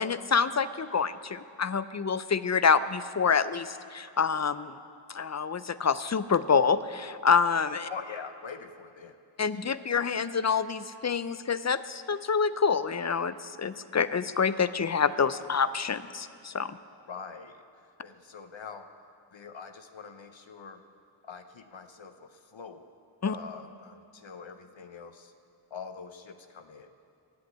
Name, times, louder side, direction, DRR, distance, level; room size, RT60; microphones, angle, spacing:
voice 1, 0.0-4.8 5.1-7.9 9.4-16.8 23.2-23.3, left 6 dB, 40° left, 14 dB, 0.4 m, -27 dB
voice 2, 7.9-9.2 17.1-17.6 18.0-20.8 21.2-22.8 23.3-25.3 25.7-27.1, left 6 dB, 70° left, 7 dB, 0.7 m, -44 dB
10.5 x 8.1 x 8.7 m, 2.4 s
wide cardioid pair, 55°, 48 cm